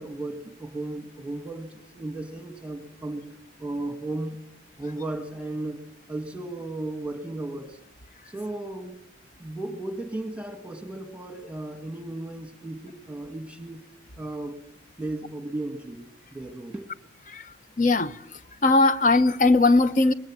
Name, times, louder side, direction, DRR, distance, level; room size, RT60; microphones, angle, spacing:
voice 1, 0.0-3.3 3.6-4.4 4.8-5.8 6.1-7.8 8.3-9.0 9.4-13.8 14.2-14.6 15.0-16.9, right 2 dB, 5° right, 1.8 m, -35 dB
voice 2, 17.8-18.1 18.6-20.1, left 3 dB, 45° left, 0.8 m, -19 dB
21.0 x 20.5 x 7.4 m
head